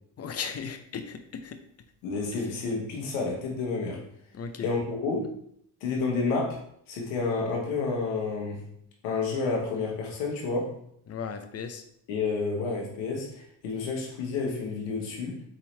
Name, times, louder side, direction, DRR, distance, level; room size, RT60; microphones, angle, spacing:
voice 1, 0.2-1.6 2.3-2.5 4.3-4.7 11.1-11.8, left 6 dB, 35° left, 8 dB, 0.6 m, -36 dB
voice 2, 2.0-4.0 4.6-5.3 5.8-6.6 6.9-8.7 9.0-10.7 12.1-15.4, left 4 dB, 85° left, 0 dB, 1.4 m, -30 dB
4.2 x 3.8 x 3.2 m, 0.70 s
supercardioid pair, 75°, 43 cm